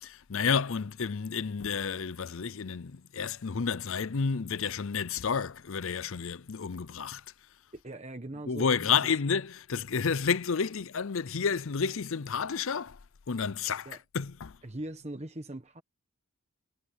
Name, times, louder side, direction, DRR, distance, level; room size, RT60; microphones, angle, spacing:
voice 1, 0.0-7.2 8.5-13.0 13.3-14.6, left 6 dB, 65° left, 0.6 m, -30 dB
voice 2, 7.7-9.1 13.8-14.0 14.6-15.8, right 1 dB, 30° right, 1.3 m, -41 dB
head